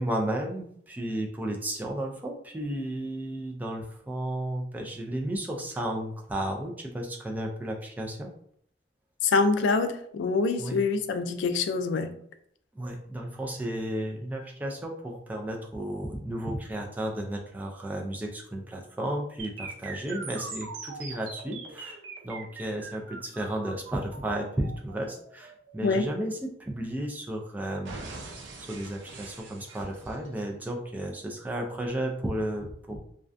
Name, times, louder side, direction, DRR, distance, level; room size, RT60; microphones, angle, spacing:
voice 1, 0.0-8.3 10.6-10.8 12.8-22.0 22.2-28.0 28.6-33.0, right 1 dB, 10° right, 0.3 m, -33 dB
voice 2, 9.2-12.1 25.8-26.1, left 4 dB, 85° left, 0.3 m, -25 dB
sound 1, 19.4-27.4 27.9-30.4, right 4 dB, 90° right, 0.5 m, -42 dB
2.4 x 2.2 x 2.4 m
head